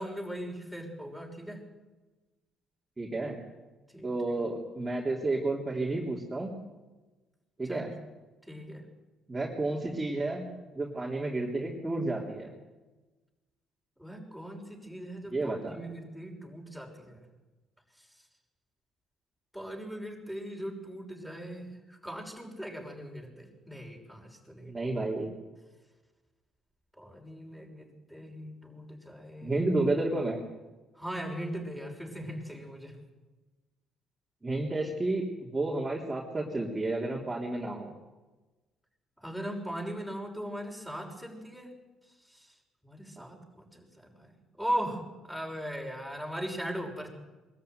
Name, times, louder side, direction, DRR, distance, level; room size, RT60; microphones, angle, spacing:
voice 1, 0.0-1.6 3.9-4.4 7.6-7.9 8.5-8.8 14.0-17.2 19.5-24.9 27.0-29.6 31.0-33.0 39.2-41.7 42.3-42.5 42.8-44.3 44.6-47.1, equal, ahead, 1 dB, 6.2 m, -39 dB
voice 2, 3.0-3.4 4.0-6.5 7.6-7.9 9.3-10.5 10.8-12.5 15.3-15.8 24.7-25.3 29.4-30.4 34.4-37.9 43.2-43.3, right 2 dB, 20° right, -2 dB, 3.5 m, -31 dB
22.5 x 13.5 x 9.5 m, 1.2 s
supercardioid pair, 75°, 0 cm